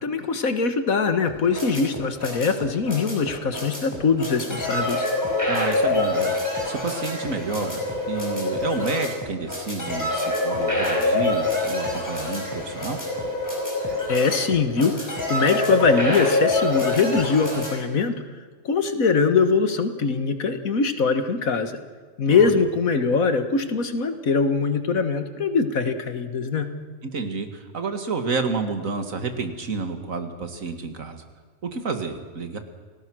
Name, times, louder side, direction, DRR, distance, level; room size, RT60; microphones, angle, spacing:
voice 1, 0.0-5.1 14.1-18.2 18.7-21.8 22.2-26.7, left 4 dB, 80° left, 9 dB, 2.0 m, -22 dB
sound 1, 1.3-17.7, left 2 dB, 15° left, 5.5 m, -26 dB
voice 2, 5.5-6.4 6.6-13.0 22.3-22.6 27.0-31.2 31.6-32.6, right 4 dB, 70° right, 7 dB, 2.4 m, -30 dB
29.0 x 19.0 x 6.3 m, 1.6 s
omnidirectional pair, 1.4 m